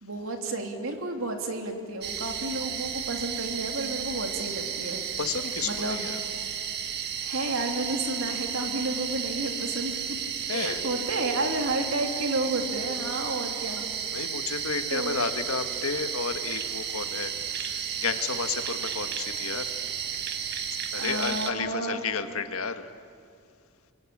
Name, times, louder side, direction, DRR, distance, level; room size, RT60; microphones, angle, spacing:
voice 1, 0.0-5.0 5.6-6.1 7.2-10.0 10.5-13.9 14.2-15.2 20.9-22.0, right 2 dB, 65° right, 3 dB, 3.1 m, -31 dB
sound 1, 2.0-21.5, right 8 dB, 50° right, 1.7 m, -33 dB
voice 2, 5.2-6.2 10.5-10.8 14.1-17.3 17.6-19.7 20.9-22.9, left 5 dB, 75° left, 8 dB, 1.6 m, -32 dB
27.0 x 23.0 x 8.7 m, 2.3 s
head